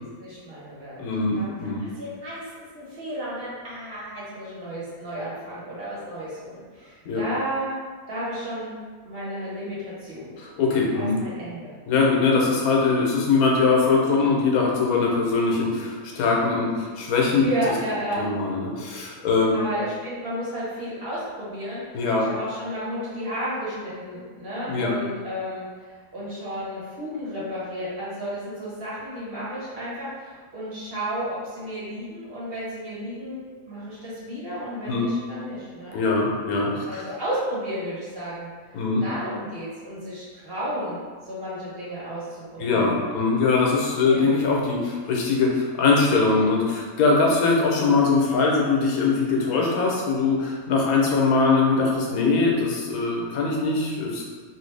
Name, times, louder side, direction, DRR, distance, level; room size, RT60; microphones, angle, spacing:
voice 1, 0.2-1.0 1.3-7.8 8.1-8.7 9.0-10.4 10.9-11.7 17.4-18.2 19.5-21.8 22.2-33.4 33.7-36.0 36.9-38.5 39.0-41.0 41.3-43.2 44.0-44.3, equal, 45° right, -9 dB, 1.2 m, -32 dB
voice 2, 1.0-1.8 7.1-7.2 10.4-11.2 11.9-17.4 18.2-19.5 21.9-22.3 24.7-24.9 34.9-35.1 35.9-37.0 38.7-39.0 42.6-54.2, left 4 dB, 85° left, -2 dB, 1.2 m, -22 dB
3.1 x 2.6 x 3.2 m, 1.5 s
omnidirectional pair, 1.5 m